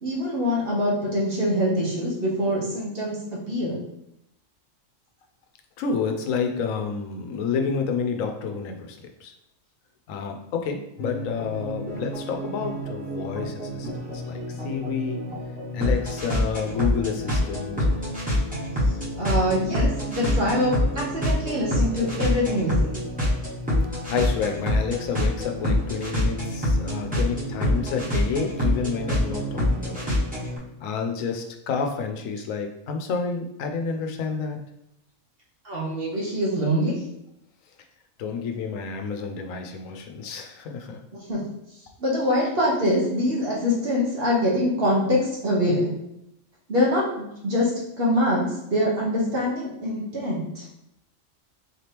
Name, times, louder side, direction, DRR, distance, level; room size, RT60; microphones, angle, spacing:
voice 1, 0.0-3.2 3.5-3.8 19.2-22.7 35.6-37.0 41.1-41.4 42.0-45.9 46.7-47.7 48.0-50.6, left 1 dB, 50° right, -5 dB, 1.3 m, -24 dB
voice 2, 5.8-9.3 10.1-15.2 15.7-17.9 24.1-30.1 30.8-34.6 38.2-41.0, left 5 dB, 90° left, 4 dB, 1.0 m, -29 dB
sound 1, 11.0-30.6, left 1 dB, 5° right, 1.2 m, -26 dB
4.2 x 2.9 x 3.3 m, 0.81 s
omnidirectional pair, 1.3 m